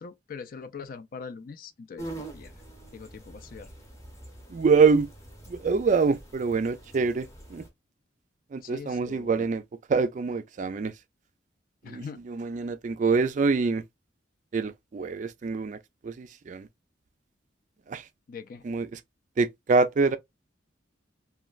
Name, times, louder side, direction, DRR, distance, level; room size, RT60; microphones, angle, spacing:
voice 1, 0.0-2.5 2.9-3.7 8.6-9.5 11.8-12.2 18.3-18.6, left 5 dB, 50° left, 0.4 m, -42 dB
sound 1, 2.0-7.7, right 2 dB, 15° left, 0.8 m, -45 dB
voice 2, 4.5-5.1 5.5-7.6 8.5-9.6 9.9-10.9 11.9-13.8 14.5-16.7 17.9-18.0 18.6-19.0 19.4-20.2, right 4 dB, 40° right, 0.3 m, -25 dB
3.1 x 2.3 x 2.4 m
head